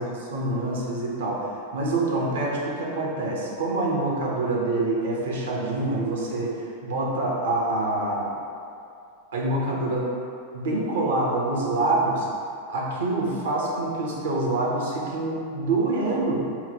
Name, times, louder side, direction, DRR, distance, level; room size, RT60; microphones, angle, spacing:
voice 1, 0.0-1.5 1.7-8.3 9.3-10.1 10.5-12.3 12.7-16.5, right 2 dB, 60° right, -3 dB, 0.7 m, -26 dB
3.7 x 2.2 x 4.3 m, 2.5 s
figure-of-eight pair, 90°, 0 cm